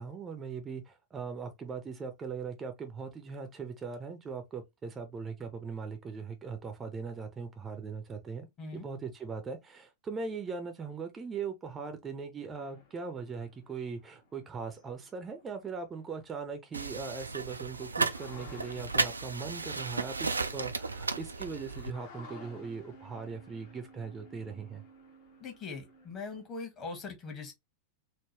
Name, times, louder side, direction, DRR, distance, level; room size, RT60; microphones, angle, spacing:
voice 1, 0.0-24.8, right 5 dB, 20° right, 0.6 m, -40 dB
sound 1, 12.5-16.6 17.2-17.3 17.5-26.5, left 2 dB, 50° left, 1.0 m, -55 dB
sound 2, 16.7-21.9, right 4 dB, 80° right, 0.3 m, -34 dB
voice 2, 25.4-27.5, left 4 dB, 30° left, 1.2 m, -41 dB
3.7 x 2.1 x 3.0 m
figure-of-eight pair, 90°, 0 cm